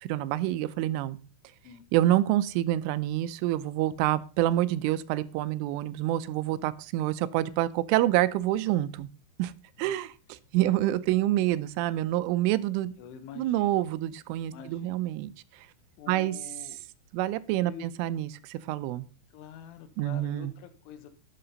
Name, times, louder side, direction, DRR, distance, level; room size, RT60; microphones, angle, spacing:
voice 1, 0.0-1.2 1.9-9.1 9.4-9.5 9.8-12.9 13.4-15.7 16.1-16.4 17.1-19.1 20.0-20.5, right 14 dB, 90° right, 15 dB, 3.3 m, -27 dB
voice 2, 13.0-13.8 14.5-15.1 16.0-16.8 17.6-17.9 19.3-21.1, left 8 dB, 85° left, 7 dB, 3.7 m, -46 dB
12.5 x 8.6 x 4.0 m, 0.35 s
omnidirectional pair, 5.5 m